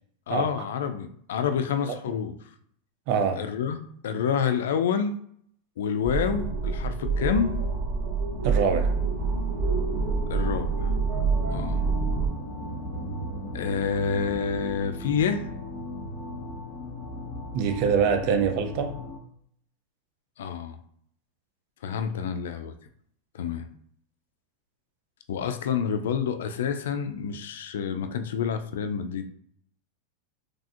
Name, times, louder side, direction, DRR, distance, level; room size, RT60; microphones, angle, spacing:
voice 1, 0.3-2.3 3.4-5.1 5.8-7.5 10.3-10.9 11.5-11.9 13.5-15.5 20.4-20.8 21.8-22.7 23.3-23.7 25.3-29.3, left 7 dB, 80° left, 8 dB, 0.4 m, -28 dB
voice 2, 3.1-3.4 8.4-8.9 17.5-18.9, right 6 dB, 55° right, 7 dB, 0.5 m, -24 dB
sound 1, 6.0-12.3, right 4 dB, 70° right, 1.1 m, -26 dB
sound 2, 7.5-19.2, equal, 40° left, 1.2 m, -37 dB
3.3 x 2.5 x 2.4 m, 0.65 s
supercardioid pair, 130°, 0 cm